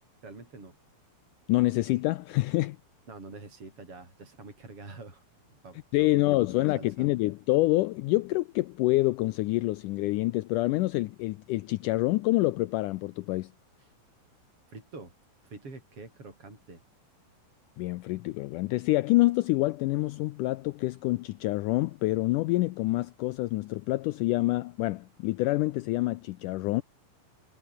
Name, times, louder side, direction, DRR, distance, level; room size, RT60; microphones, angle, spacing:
voice 1, 0.2-0.8 3.1-5.2 5.5-7.1 14.7-15.1 15.4-16.8, right 3 dB, 35° right, 8.5 m, -46 dB
voice 2, 1.5-2.8 5.9-13.5 17.8-26.8, left 19 dB, 85° left, 1.8 m, -27 dB
omnidirectional pair, 4.3 m